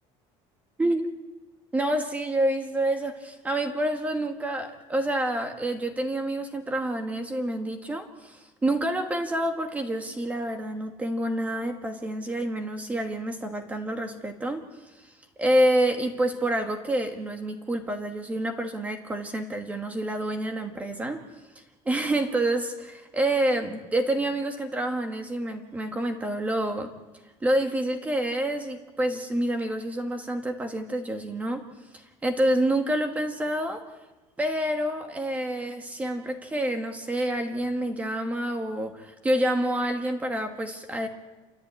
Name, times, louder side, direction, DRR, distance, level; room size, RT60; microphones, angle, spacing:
voice 1, 1.7-14.6 15.4-21.2 21.8-26.9 27.4-31.6 31.9-33.8 34.4-41.1, right 1 dB, 10° right, 5 dB, 1.5 m, -28 dB
28.0 x 14.0 x 8.8 m, 1.1 s
cardioid pair, 175°, 12 cm